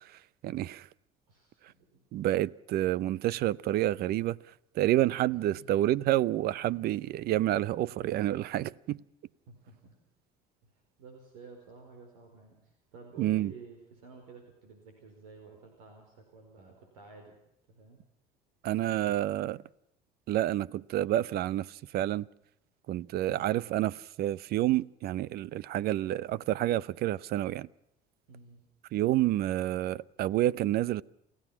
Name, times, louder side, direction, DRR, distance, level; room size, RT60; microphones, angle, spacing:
voice 1, 0.4-0.8 2.1-4.4 4.8-9.0 13.2-13.5 18.6-19.6 20.3-21.7 21.9-22.3 22.9-27.7 28.9-31.0, right 14 dB, 60° right, 0.7 m, -29 dB
voice 2, 1.3-2.0 5.3-5.9 9.5-9.9 11.0-17.4 17.7-18.0 28.3-28.6, right 4 dB, 90° right, 4.8 m, -52 dB
28.5 x 16.5 x 5.9 m
supercardioid pair, 95°, 18 cm